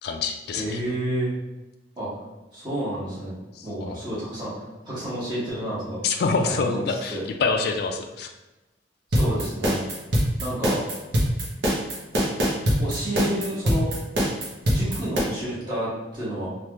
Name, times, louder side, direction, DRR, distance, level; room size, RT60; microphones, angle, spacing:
voice 1, 0.0-0.8 3.5-4.0 6.0-8.3, left 4 dB, 60° left, 4 dB, 0.3 m, -26 dB
voice 2, 0.5-1.3 2.0-2.1 2.5-6.0 6.4-7.2 9.1-9.8 10.4-10.8 12.8-13.9 14.7-16.5, right 1 dB, 25° right, -9 dB, 1.3 m, -30 dB
sound 1, 9.1-15.2, equal, 70° right, 0.8 m, -22 dB
3.2 x 2.4 x 2.9 m, 1.0 s
head